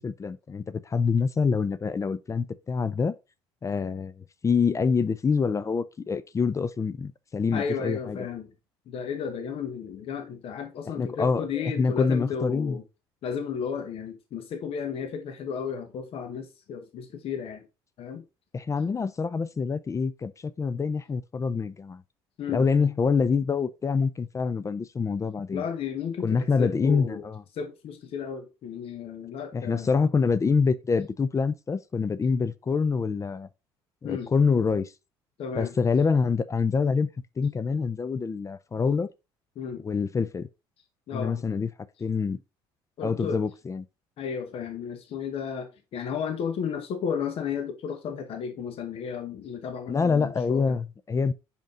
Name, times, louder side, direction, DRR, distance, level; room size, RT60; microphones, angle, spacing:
voice 1, 0.0-3.1 3.6-8.2 11.0-12.8 18.5-22.0 22.5-25.6 26.2-27.4 29.5-33.5 34.0-34.9 35.5-37.1 37.4-39.1 39.8-40.5 41.1-41.7 42.0-42.4 43.0-43.8 49.9-51.3, left 5 dB, 25° left, 0.5 m, -26 dB
voice 2, 7.5-8.5 8.9-12.8 13.2-17.7 18.0-18.2 22.4-22.7 25.5-27.2 27.5-29.9 34.0-34.3 35.4-35.7 39.6-39.8 41.1-41.4 43.0-43.4 44.2-50.8, left 7 dB, 60° left, 1.1 m, -33 dB
5.2 x 5.1 x 3.7 m
hypercardioid pair, 65°, 11 cm